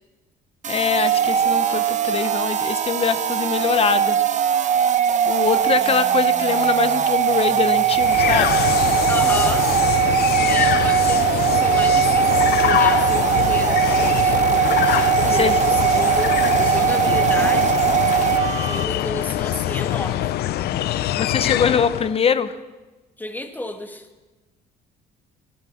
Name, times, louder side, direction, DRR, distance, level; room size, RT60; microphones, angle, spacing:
sound 1, 0.6-18.8, right 9 dB, 45° right, 0.9 m, -20 dB
voice 1, 0.7-4.2 5.3-8.6 15.3-15.6 21.1-22.5, left 6 dB, 35° left, 14 dB, 0.8 m, -23 dB
sound 2, 7.9-22.2, left 13 dB, 70° left, 0.6 m, -23 dB
voice 2, 9.1-9.7 10.4-14.4 14.8-17.9 18.6-20.3 23.2-24.1, left 2 dB, 10° left, 7 dB, 1.5 m, -32 dB
15.0 x 11.5 x 7.3 m, 1.2 s
cardioid pair, 110°, 17 cm